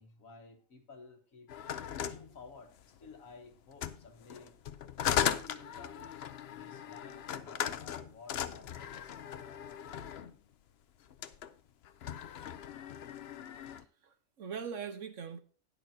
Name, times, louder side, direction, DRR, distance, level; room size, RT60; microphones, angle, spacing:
voice 1, 0.0-1.5 2.0-4.6 5.1-9.6, left 4 dB, 75° left, 6 dB, 1.8 m, -54 dB
sound 1, 1.5-3.1 3.7-10.4 11.1-11.5 11.8-13.8, left 9 dB, 60° left, 0.8 m, -37 dB
voice 2, 13.7-15.4, right 7 dB, 65° right, 8 dB, 1.4 m, -42 dB
19.5 x 6.5 x 2.7 m, 0.40 s
omnidirectional pair, 1.4 m